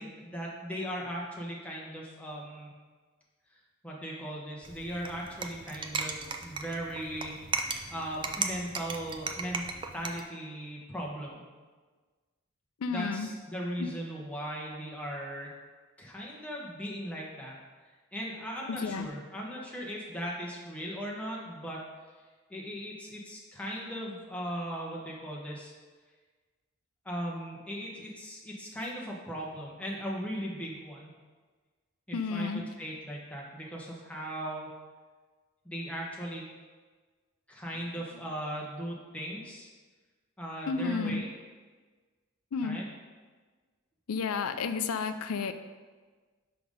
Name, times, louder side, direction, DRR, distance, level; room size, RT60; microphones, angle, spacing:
voice 1, 0.0-2.7 3.8-7.4 7.9-9.6 9.9-11.4 12.9-15.5 16.0-17.6 18.1-21.8 22.5-25.7 27.0-31.1 32.1-34.7 35.6-36.4 37.5-39.7 40.4-41.3 42.6-42.8, equal, 5° left, -3 dB, 1.0 m, -38 dB
sound 1, 4.6-10.2, right 4 dB, 20° right, 0.3 m, -36 dB
voice 2, 12.8-13.3 13.8-13.9 18.7-19.1 32.1-32.6 40.7-41.2 42.5-42.8 44.1-45.5, left 5 dB, 80° left, 10 dB, 0.5 m, -31 dB
5.9 x 5.0 x 5.3 m, 1.4 s
head